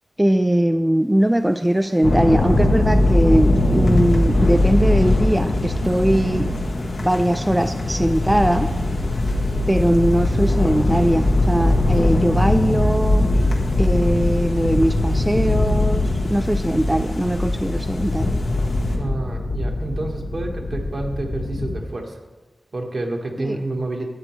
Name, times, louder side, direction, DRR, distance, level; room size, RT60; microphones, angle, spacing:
voice 1, 0.2-6.5 7.0-8.7 9.7-13.3 13.8-16.0 16.3-18.4 23.4-23.6, right 1 dB, 10° right, 8 dB, 0.3 m, -20 dB
sound 1, 1.1-19.0, left 2 dB, 80° left, 1.3 m, -37 dB
sound 2, 2.0-21.8, left 2 dB, 60° left, 0.9 m, -21 dB
voice 2, 19.0-22.1 22.7-24.0, right 2 dB, 60° right, 1 dB, 1.4 m, -28 dB
12.0 x 7.8 x 3.1 m, 1.2 s
wide cardioid pair, 80°, 0 cm